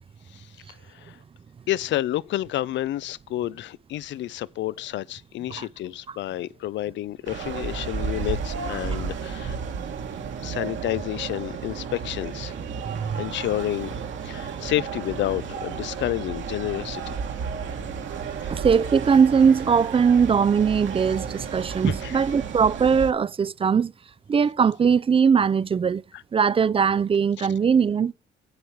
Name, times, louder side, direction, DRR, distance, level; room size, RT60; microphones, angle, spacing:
voice 1, 1.7-9.6 10.4-12.5 13.1-13.9 14.2-17.2 22.0-22.1 26.1-26.2 27.4-27.5, left 14 dB, 65° left, 0.4 m, -30 dB
sound 1, 7.3-23.1, right 6 dB, 70° right, 1.9 m, -33 dB
voice 2, 12.8-13.2 18.5-23.9 24.3-26.0 26.3-28.1, right 6 dB, 30° right, 0.4 m, -20 dB
7.9 x 7.9 x 4.5 m
cardioid pair, 90°, 20 cm